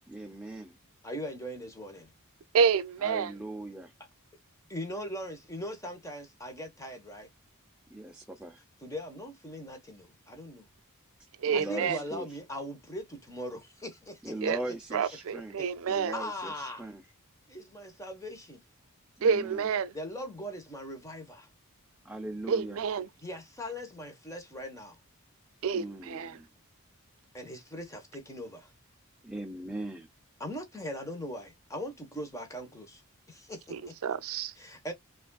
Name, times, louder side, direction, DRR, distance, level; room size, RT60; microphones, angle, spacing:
voice 1, 0.1-0.8 3.0-3.9 7.9-8.6 11.4-12.4 14.2-17.0 19.2-19.7 22.0-22.8 25.7-26.5 29.2-30.1, right 2 dB, 5° right, 0.4 m, -40 dB
voice 2, 1.0-2.1 4.7-7.3 8.8-10.6 11.5-14.3 15.3-15.4 15.9-16.9 17.5-18.6 19.9-21.5 23.2-25.0 27.3-28.7 30.4-33.0 33.3-33.9 34.5-34.9, equal, 15° left, 1.0 m, -40 dB
voice 3, 2.5-3.3 11.4-12.0 14.4-14.6 14.9-16.1 19.2-19.9 22.5-23.1 25.6-26.4 33.7-34.5, right 6 dB, 65° right, 0.4 m, -28 dB
5.0 x 2.5 x 2.2 m
head